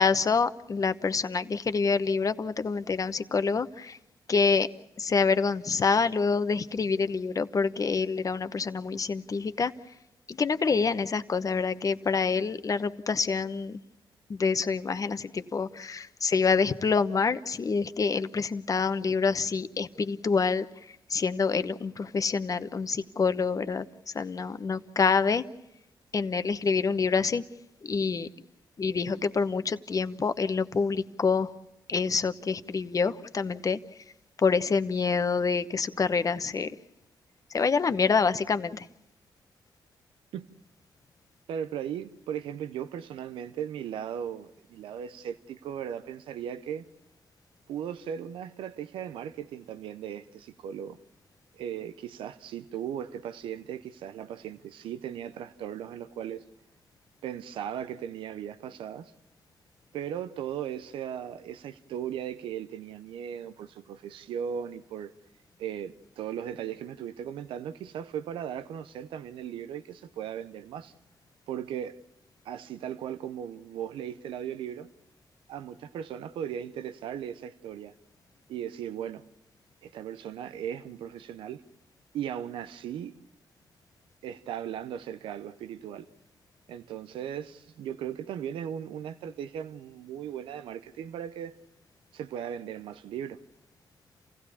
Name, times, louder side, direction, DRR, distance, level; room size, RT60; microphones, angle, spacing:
voice 1, 0.0-4.0 4.3-4.7 5.0-9.7 10.3-13.8 14.3-25.4 26.1-27.4 27.8-28.3 28.8-31.5 31.9-33.8 34.4-36.8 37.5-38.9, left 5 dB, 45° left, 1.0 m, -27 dB
voice 2, 41.5-46.9 47.7-51.0 51.5-56.4 57.2-59.1 59.9-65.1 65.6-70.9 71.5-72.0 72.4-74.9 75.5-77.9 78.5-79.2 79.8-81.6 82.1-83.1 84.2-86.1 86.7-91.6 92.1-93.4, right 9 dB, 90° right, 0.8 m, -37 dB
28.5 x 16.0 x 7.1 m
cardioid pair, 70°, 8 cm